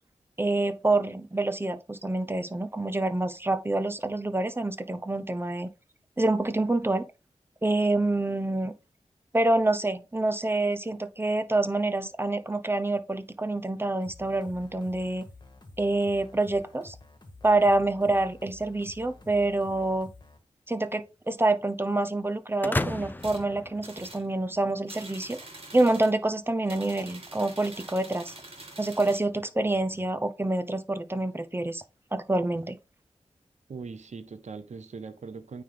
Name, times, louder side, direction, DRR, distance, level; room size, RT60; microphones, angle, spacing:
voice 1, 0.4-5.7 6.2-7.0 7.6-8.7 9.3-15.2 15.8-17.0 17.4-20.1 20.7-25.4 25.7-28.3 28.8-31.8 32.1-32.8, right 2 dB, 20° right, 0.7 m, -27 dB
sound 1, 14.0-20.4, left 2 dB, 35° left, 1.6 m, -50 dB
sound 2, 22.6-24.6, left 2 dB, 15° left, 0.5 m, -33 dB
sound 3, 23.2-23.4 23.8-24.2 24.9-26.2 26.6-29.3, right 2 dB, 50° right, 2.3 m, -45 dB
voice 2, 33.7-35.6, right 4 dB, 70° right, 0.7 m, -40 dB
9.1 x 3.4 x 3.8 m
wide cardioid pair, 75°, 12 cm